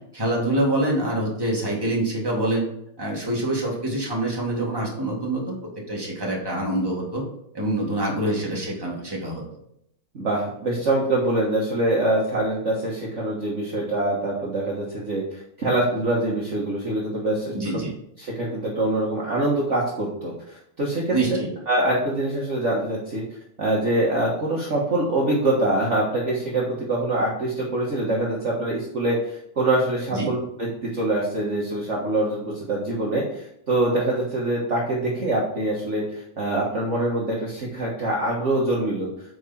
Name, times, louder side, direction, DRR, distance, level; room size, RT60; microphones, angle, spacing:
voice 1, 0.1-2.7 3.0-5.6 5.9-7.2 7.5-9.4 17.5-17.9 21.1-21.5 30.1-30.3, right 1 dB, 10° right, -3 dB, 2.1 m, -25 dB
voice 2, 10.1-17.8 18.2-21.2 21.7-23.2 23.6-39.1, right 1 dB, 40° right, -4 dB, 1.6 m, -24 dB
9.2 x 4.9 x 4.3 m, 0.74 s
omnidirectional pair, 2.2 m